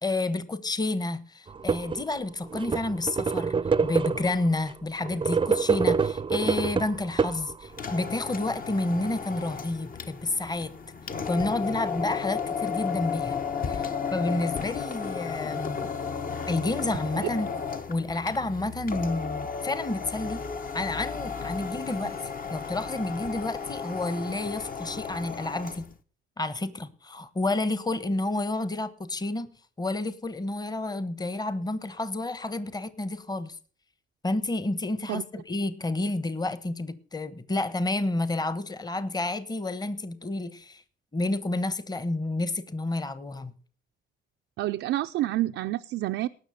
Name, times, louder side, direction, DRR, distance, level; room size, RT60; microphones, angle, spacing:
voice 1, 0.0-3.5 3.8-10.7 11.3-13.4 13.7-15.9 16.5-17.5 17.9-20.4 20.7-25.9 26.4-29.5 29.8-33.6 34.2-40.8 41.1-43.5, left 2 dB, 20° left, 1.1 m, -30 dB
sound 1, 1.5-2.0 2.5-4.4 5.1-7.8, right 5 dB, 25° right, 0.6 m, -26 dB
sound 2, 7.7-25.9, left 6 dB, 45° left, 1.2 m, -34 dB
voice 2, 44.6-46.3, right 15 dB, 80° right, 0.5 m, -28 dB
18.5 x 6.3 x 6.5 m
cardioid pair, 90°, 20 cm